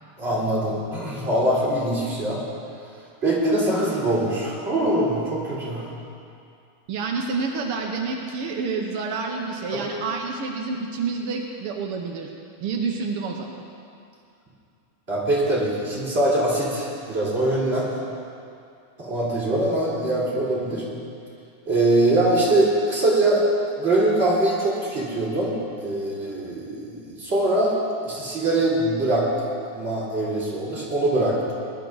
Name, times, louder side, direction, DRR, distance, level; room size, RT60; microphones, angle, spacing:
voice 1, 0.2-2.4 3.2-5.9 9.7-9.9 15.1-17.9 19.0-20.8 21.7-23.4 23.8-27.7 28.0-29.3 29.7-31.5, right 1 dB, 25° right, -7 dB, 3.8 m, -23 dB
voice 2, 6.9-12.3 12.6-13.6, right 4 dB, 85° right, 1 dB, 1.9 m, -28 dB
20.0 x 12.0 x 4.0 m, 2.5 s
omnidirectional pair, 2.4 m